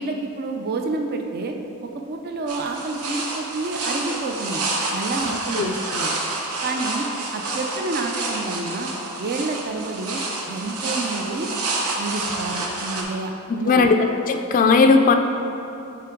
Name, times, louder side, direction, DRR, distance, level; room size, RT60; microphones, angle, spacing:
voice 1, 0.0-1.6 1.9-4.6 4.9-6.1 6.6-7.1 7.3-8.9 9.2-11.5 12.0-13.9, right 3 dB, 45° right, 3 dB, 0.4 m, -29 dB
sound 1, 2.5-13.0, right 2 dB, 80° right, 0.9 m, -28 dB
voice 2, 13.7-14.0 14.3-15.1, left 4 dB, 35° left, 6 dB, 0.3 m, -16 dB
8.5 x 3.4 x 4.5 m, 2.9 s
head